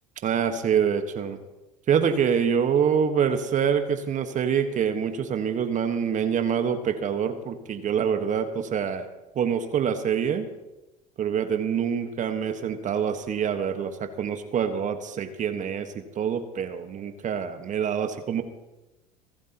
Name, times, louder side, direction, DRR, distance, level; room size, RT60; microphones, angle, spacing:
voice 1, 0.2-1.4 1.9-9.1 9.3-10.5 11.2-18.4, right 7 dB, 40° right, 8 dB, 1.5 m, -26 dB
27.5 x 12.5 x 3.0 m, 1.0 s
hypercardioid pair, 75°, 20 cm